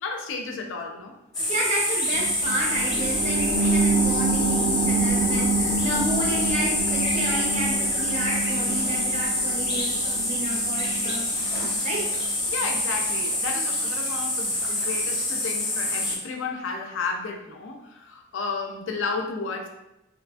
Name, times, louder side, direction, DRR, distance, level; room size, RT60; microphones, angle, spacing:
voice 1, 0.0-1.1 12.5-19.7, left 4 dB, 65° left, 3 dB, 0.4 m, -32 dB
sound 1, 1.3-16.2, left 1 dB, 20° left, 0.6 m, -26 dB
voice 2, 1.4-11.2 11.8-12.1, right 1 dB, 35° right, -2 dB, 0.5 m, -31 dB
sound 2, 2.1-13.2 13.6-13.7, right 3 dB, 75° right, 0.8 m, -28 dB
2.8 x 2.4 x 2.2 m, 0.92 s
head